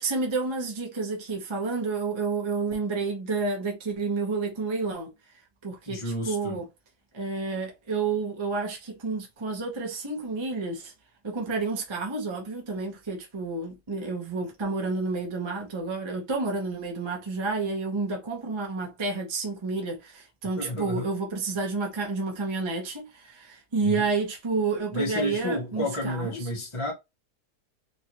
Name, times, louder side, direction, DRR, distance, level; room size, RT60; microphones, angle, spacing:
voice 1, 0.0-5.1 5.6-6.7 7.1-10.9 11.2-26.5, right 4 dB, 25° right, 0.7 m, -30 dB
voice 2, 5.9-6.6 20.6-21.1 23.8-24.0 24.9-26.9, left 1 dB, 25° left, 0.7 m, -31 dB
3.2 x 2.6 x 2.9 m
omnidirectional pair, 1.7 m